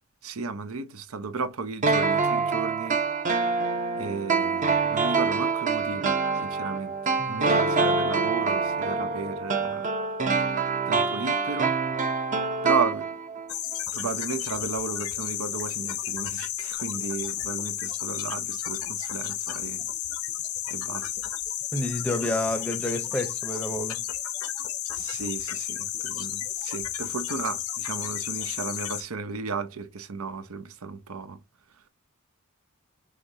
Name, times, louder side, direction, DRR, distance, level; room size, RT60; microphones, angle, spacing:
voice 1, 0.2-3.0 4.0-7.0 7.3-9.9 10.9-11.8 12.6-13.1 13.9-19.9 20.7-21.1 24.9-31.4, right 4 dB, 80° right, 0.7 m, -34 dB
sound 1, 1.8-13.5 13.7-13.8, right 4 dB, 35° right, 0.7 m, -25 dB
sound 2, 13.5-29.0, left 11 dB, 85° left, 0.8 m, -32 dB
voice 2, 21.7-24.0, left 1 dB, 5° left, 0.7 m, -29 dB
5.0 x 3.0 x 2.7 m
head